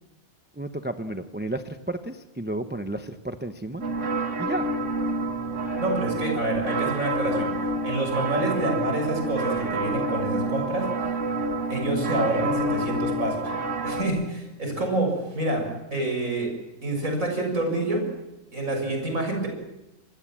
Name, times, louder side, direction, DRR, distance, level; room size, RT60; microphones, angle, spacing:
voice 1, 0.6-3.8 4.4-4.7, right 1 dB, 10° right, 7 dB, 0.9 m, -32 dB
sound 1, 3.8-14.0, right 2 dB, 65° right, 2.8 m, -28 dB
voice 2, 5.8-7.5 7.8-10.9 11.7-13.5 13.8-15.6 15.9-16.5 16.8-18.0 18.5-19.5, right 2 dB, 80° right, 3 dB, 7.2 m, -27 dB
27.0 x 20.5 x 7.6 m, 0.97 s
omnidirectional pair, 1.4 m